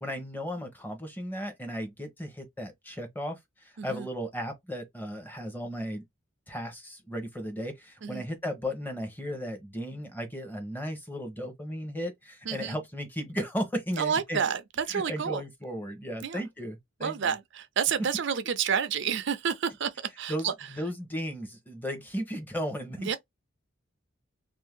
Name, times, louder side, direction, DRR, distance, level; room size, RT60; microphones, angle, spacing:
voice 1, 0.0-6.0 6.5-14.4 14.9-17.3 20.3-23.2, equal, 10° left, 0.9 m, -35 dB
voice 2, 12.5-12.8 14.0-15.4 16.2-16.4 17.0-20.5 23.0-23.2, right 7 dB, 60° right, 0.5 m, -29 dB
2.7 x 2.6 x 3.6 m
head